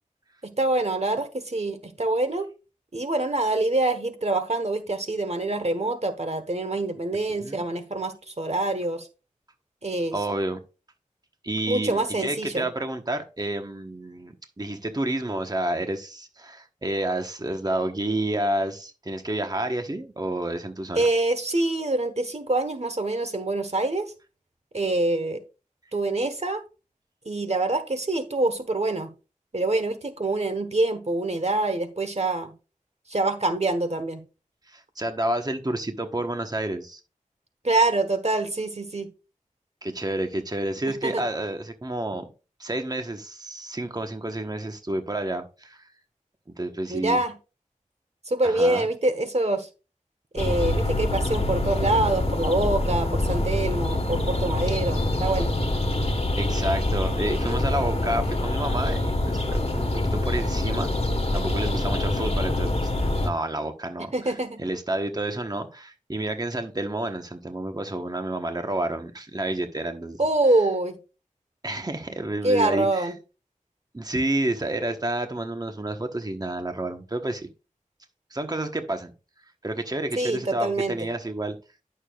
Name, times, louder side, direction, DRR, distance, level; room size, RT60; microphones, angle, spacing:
voice 1, 0.4-2.5 2.9-9.1 9.8-10.1 11.7-12.6 21.0-24.0 24.7-25.4 25.9-26.6 27.2-29.1 29.5-32.5 33.1-34.2 37.6-39.1 41.0-41.2 46.9-47.3 48.3-49.7 50.3-55.5 64.1-64.6 70.2-71.0 72.4-73.1 80.2-81.0, right 2 dB, 55° right, 8 dB, 1.1 m, -25 dB
voice 2, 10.1-10.6 11.4-21.1 34.7-37.0 39.8-42.2 42.6-45.9 46.6-47.2 48.4-48.9 56.3-60.9 61.3-64.3 64.6-70.2 71.6-73.1 73.9-77.5 78.3-79.1 79.6-81.6, right 1 dB, 30° right, 6 dB, 1.1 m, -30 dB
sound 1, 50.4-63.3, left 1 dB, 45° left, 1.3 m, -25 dB
11.0 x 6.7 x 2.4 m, 0.31 s
wide cardioid pair, 50°, 14 cm